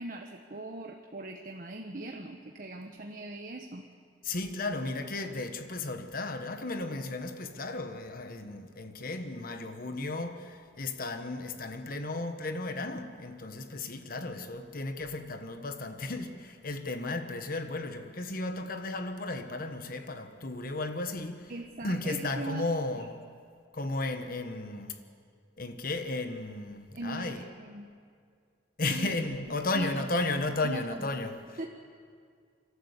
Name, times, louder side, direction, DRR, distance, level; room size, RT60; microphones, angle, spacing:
voice 1, 0.0-3.9 21.5-22.7 22.9-23.0 26.9-27.9 28.9-29.2 29.5-30.0 30.6-31.1 31.6-31.7, right 2 dB, 50° right, 1.1 m, -40 dB
voice 2, 4.2-21.5 21.8-23.2 23.7-25.0 25.6-27.4 28.8-31.4, left 2 dB, 55° left, 1.3 m, -34 dB
29.0 x 12.5 x 8.3 m
head